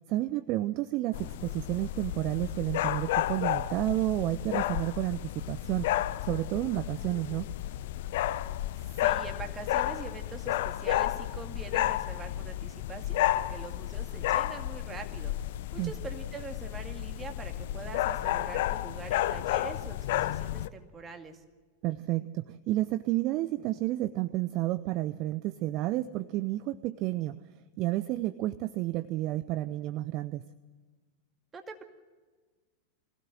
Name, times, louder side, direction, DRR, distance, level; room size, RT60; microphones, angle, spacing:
voice 1, 0.1-5.9 6.2-7.5 15.8-15.9 21.8-27.4 27.8-30.4, right 16 dB, 40° right, 16 dB, 0.6 m, -31 dB
sound 1, 1.1-20.7, left 14 dB, 55° left, 0.6 m, -32 dB
voice 2, 9.0-15.3 15.7-21.4 31.5-31.8, right 5 dB, 20° right, 5 dB, 2.3 m, -44 dB
22.5 x 16.5 x 7.6 m, 1.4 s
figure-of-eight pair, 90°, 0 cm